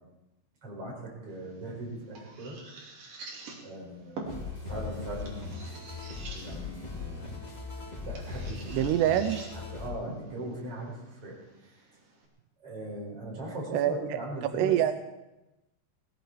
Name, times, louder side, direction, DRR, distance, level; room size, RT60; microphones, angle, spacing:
voice 1, 0.6-2.5 3.6-5.6 6.3-7.3 8.0-8.6 9.7-11.4 11.6-11.7 12.6-14.7, right 1 dB, 30° right, -2 dB, 5.4 m, -39 dB
sound 1, 1.3-12.3, right 3 dB, 50° right, 3.8 m, -47 dB
sound 2, 4.2-9.9, left 4 dB, 10° left, 2.1 m, -39 dB
voice 2, 8.7-9.4 13.7-14.2 14.5-14.9, right 11 dB, 85° right, 10 dB, 2.3 m, -25 dB
18.0 x 15.5 x 4.7 m, 0.97 s
omnidirectional pair, 5.6 m